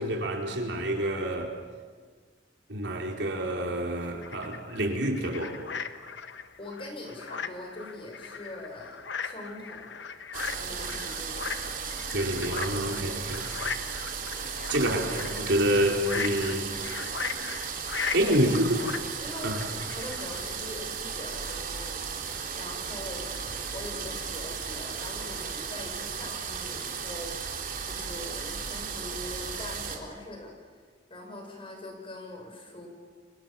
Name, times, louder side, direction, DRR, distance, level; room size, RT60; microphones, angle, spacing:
voice 1, 0.0-1.5 2.7-5.6 12.1-13.5 14.7-16.7 18.1-18.8 19.4-19.6, right 1 dB, 70° right, 2 dB, 4.5 m, -27 dB
sound 1, 4.0-20.4, left 5 dB, 80° left, 1.4 m, -38 dB
voice 2, 6.6-10.0 10.5-11.4 18.2-18.9 19.2-23.4 23.7-30.7 31.1-32.9, left 1 dB, 30° left, 2 dB, 6.7 m, -42 dB
sound 2, 10.3-30.0, right 6 dB, 50° right, 3.7 m, -35 dB
30.0 x 25.0 x 7.3 m, 1.5 s
head